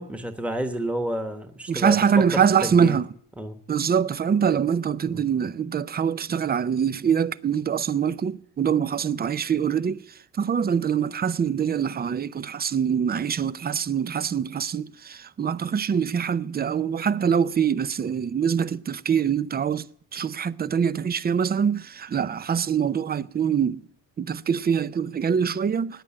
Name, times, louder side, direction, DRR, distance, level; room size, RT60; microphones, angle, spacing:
voice 1, 0.0-2.0 2.3-3.0 3.4-3.6 5.1-5.3, right 1 dB, 5° right, 1.3 m, -30 dB
voice 2, 1.7-3.1 3.7-23.9 24.2-26.0, right 7 dB, 25° right, 0.5 m, -24 dB
15.0 x 9.9 x 8.6 m
cardioid pair, 105°, 36 cm